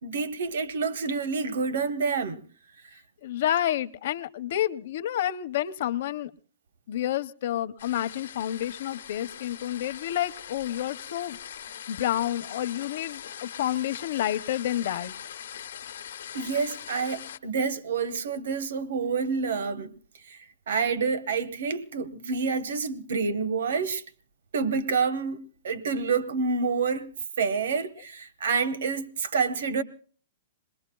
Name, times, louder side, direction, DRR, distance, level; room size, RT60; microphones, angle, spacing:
voice 1, 0.0-2.4 16.3-19.9 20.3-20.4 20.7-24.0 24.5-27.1 27.4-29.8, right 5 dB, 75° right, 1.1 m, -28 dB
voice 2, 3.2-6.3 6.9-11.4 11.9-15.1, left 12 dB, 50° left, 0.6 m, -29 dB
sound 1, 7.8-17.4, left 9 dB, 80° left, 0.9 m, -41 dB
27.0 x 21.5 x 2.3 m
hypercardioid pair, 175°, 0 cm